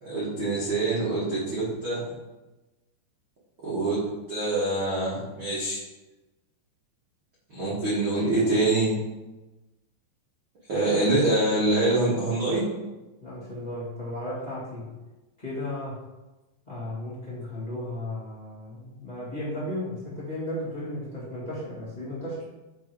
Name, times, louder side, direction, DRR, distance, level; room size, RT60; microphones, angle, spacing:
voice 1, 0.0-2.0 3.6-3.9 4.3-5.8 7.5-8.9 10.7-12.6, right 2 dB, 65° right, -9 dB, 1.2 m, -25 dB
voice 2, 13.2-14.9 15.4-16.0 16.7-22.4, left 1 dB, 20° left, -9 dB, 1.2 m, -35 dB
10.0 x 3.8 x 4.7 m, 1.1 s
omnidirectional pair, 5.3 m